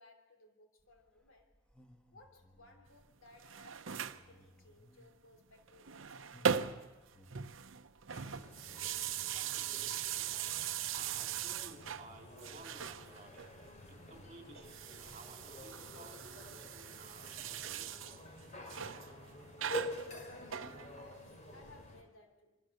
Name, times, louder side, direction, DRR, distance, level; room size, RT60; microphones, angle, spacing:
voice 1, 0.0-1.5 2.1-6.6 20.1-22.6, left 2 dB, 70° left, 4 dB, 3.3 m, -62 dB
sound 1, 0.8-14.2, left 1 dB, 5° left, 1.6 m, -65 dB
sound 2, 3.3-4.2 5.7-7.0 7.3-12.1 12.4-13.5 14.6-18.2 18.7-19.1 19.6-21.2, right 8 dB, 65° right, 0.8 m, -40 dB
sound 3, 8.1-22.0, left 1 dB, 35° left, 3.1 m, -49 dB
voice 2, 9.2-10.3 10.9-18.3, right 2 dB, 35° right, 3 dB, 3.9 m, -56 dB
26.0 x 23.0 x 6.7 m, 1.2 s
head